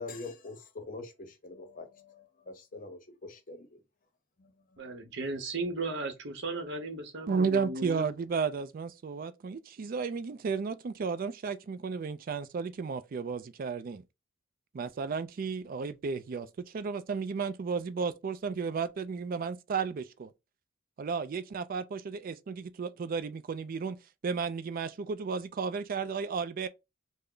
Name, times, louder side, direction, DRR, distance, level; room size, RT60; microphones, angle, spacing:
voice 1, 0.0-3.8 4.4-5.0, left 3 dB, 45° left, 0.7 m, -45 dB
voice 2, 4.8-8.1, right 2 dB, 60° right, 0.8 m, -36 dB
voice 3, 7.3-14.0 14.7-16.5 16.7-20.3 21.0-24.0 24.2-26.7, right 5 dB, 45° right, 0.3 m, -33 dB
3.3 x 2.1 x 3.7 m
head